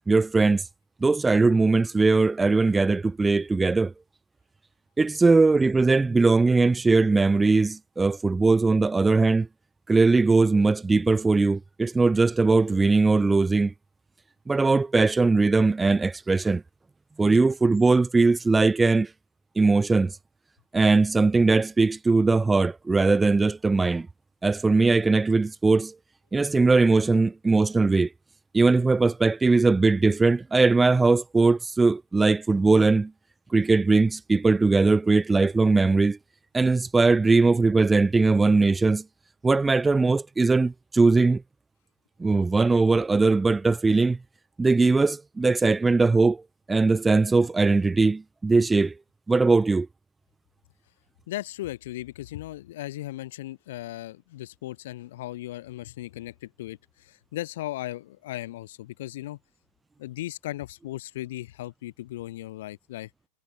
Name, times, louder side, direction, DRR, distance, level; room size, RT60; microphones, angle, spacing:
voice 1, 0.1-0.6 1.0-3.9 5.0-9.5 9.9-13.7 14.5-16.6 17.2-19.1 19.6-20.2 20.7-24.1 24.4-25.9 26.3-28.1 28.5-33.1 33.5-36.2 36.5-39.0 39.4-41.4 42.2-44.2 44.6-46.4 46.7-48.9 49.3-49.9, right 3 dB, 10° right, 0.9 m, -20 dB
voice 2, 51.3-59.4 60.0-63.1, left 15 dB, 55° left, 7.0 m, -37 dB
figure-of-eight pair, 90°, 0 cm